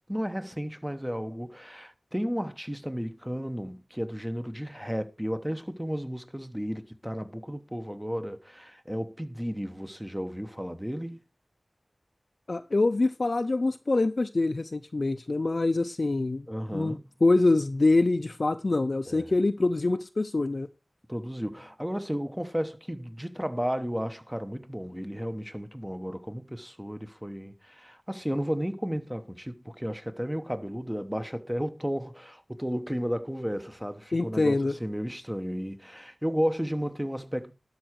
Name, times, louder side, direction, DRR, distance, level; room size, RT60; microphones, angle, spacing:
voice 1, 0.1-11.2 16.5-17.2 19.1-19.3 21.1-37.5, equal, 5° right, 1.0 m, -33 dB
voice 2, 12.5-16.5 16.7-20.7 34.1-34.7, left 2 dB, 60° left, 0.5 m, -25 dB
12.0 x 4.8 x 6.4 m
wide cardioid pair, 65°, 0 cm